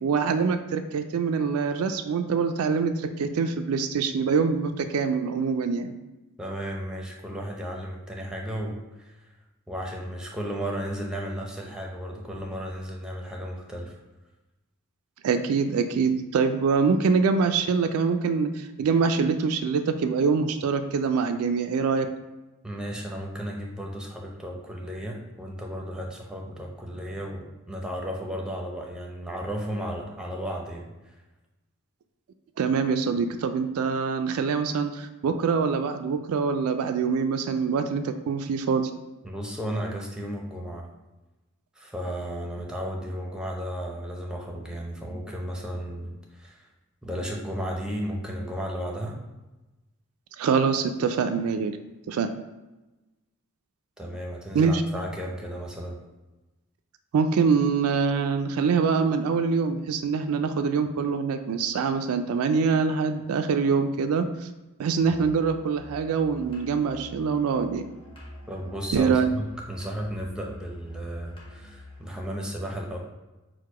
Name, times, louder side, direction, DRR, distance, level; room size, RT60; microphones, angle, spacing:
voice 1, 0.0-5.9 15.2-22.1 32.6-38.9 50.4-51.7 52.1-52.3 54.5-54.8 57.1-64.2 64.8-67.8 68.9-69.3, right 5 dB, 75° right, 8 dB, 0.3 m, -24 dB
voice 2, 6.4-9.3 9.7-14.0 22.6-31.2 39.2-40.9 41.8-46.7 47.0-49.2 54.0-56.0 68.5-73.0, equal, 5° right, -1 dB, 0.6 m, -34 dB
Musical instrument, 65.0-72.1, left 1 dB, 25° left, 0.9 m, -47 dB
4.6 x 2.1 x 4.7 m, 1.1 s
head